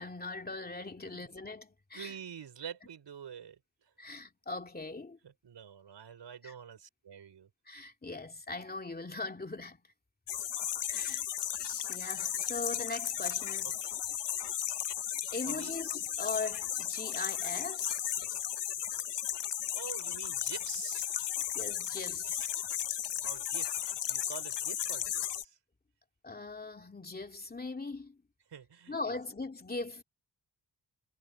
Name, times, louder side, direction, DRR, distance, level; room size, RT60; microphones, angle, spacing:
voice 1, 0.0-2.1 4.0-5.2 6.4-6.5 7.7-9.8 10.9-11.2 11.5-13.9 15.3-18.1 21.5-22.6 26.2-28.2 28.9-30.0, left 3 dB, 20° left, 2.6 m, -40 dB
voice 2, 1.9-3.9 5.2-7.5 13.6-13.7 15.4-15.7 19.7-21.4 23.2-25.6 28.5-29.2, right 8 dB, 90° right, 5.1 m, -47 dB
sound 1, 10.3-25.4, left 10 dB, 80° left, 0.8 m, -35 dB
wide cardioid pair, 100°, 41 cm